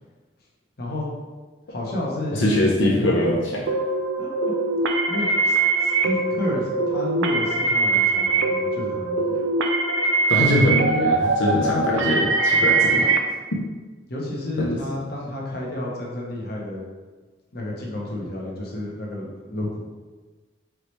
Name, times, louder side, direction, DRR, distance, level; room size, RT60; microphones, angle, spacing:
voice 1, 0.8-1.1 1.7-2.4 4.2-4.3 5.1-9.4 14.1-16.8 17.5-19.9, left 1 dB, 55° left, -3 dB, 0.9 m, -31 dB
voice 2, 2.3-3.6 10.3-13.1 14.6-14.8, left 1 dB, 85° left, -3 dB, 0.7 m, -22 dB
sound 1, 3.7-13.2, right 3 dB, 75° right, 0.4 m, -22 dB
4.7 x 3.1 x 3.1 m, 1.3 s
head